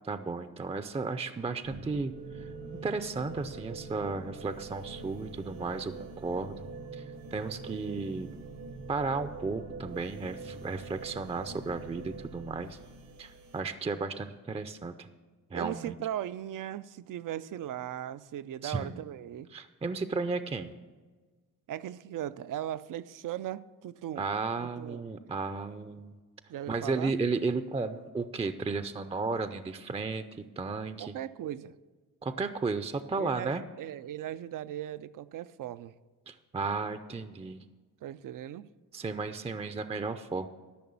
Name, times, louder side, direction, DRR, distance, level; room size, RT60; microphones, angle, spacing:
voice 1, 0.1-2.4 2.8-6.6 6.9-7.0 7.3-8.4 8.9-12.8 13.2-15.1 15.5-15.9 18.6-19.0 19.5-20.7 24.2-26.1 26.7-30.2 30.6-31.1 32.2-33.6 36.3-37.6 38.9-40.5, right 4 dB, 15° right, 11 dB, 0.5 m, -34 dB
sound 1, 1.6-13.6, right 3 dB, 80° right, 1.7 m, -44 dB
voice 2, 15.5-19.5 21.7-24.3 24.6-25.0 26.5-27.1 31.0-31.7 33.1-35.9 38.0-38.7, right 11 dB, 65° right, 15 dB, 0.5 m, -38 dB
13.0 x 5.9 x 7.0 m, 1.3 s
cardioid pair, 70°, 35 cm